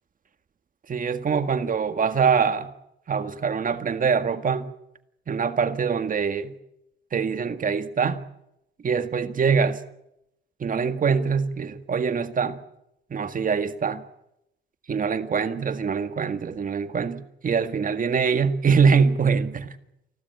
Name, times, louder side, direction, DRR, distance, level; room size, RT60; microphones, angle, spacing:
voice 1, 0.9-2.7 3.1-4.7 5.3-6.5 7.1-8.2 8.8-9.8 10.6-12.6 13.1-14.0 14.9-19.7, right 6 dB, 45° right, 1.8 m, -24 dB
29.0 x 12.5 x 9.8 m
cardioid pair, 90°, 20 cm